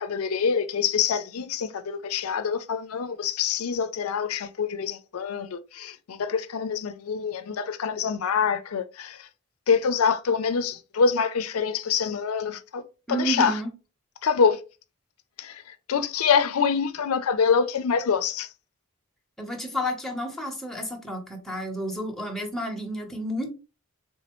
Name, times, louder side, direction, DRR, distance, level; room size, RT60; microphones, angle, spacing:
voice 1, 0.0-9.2 9.7-12.8 13.1-13.5 14.2-14.6 15.4-15.6 15.9-18.5, left 6 dB, 75° left, 0.4 m, -25 dB
voice 2, 13.1-13.7 19.4-23.5, equal, ahead, 0.9 m, -31 dB
4.1 x 3.4 x 3.0 m
head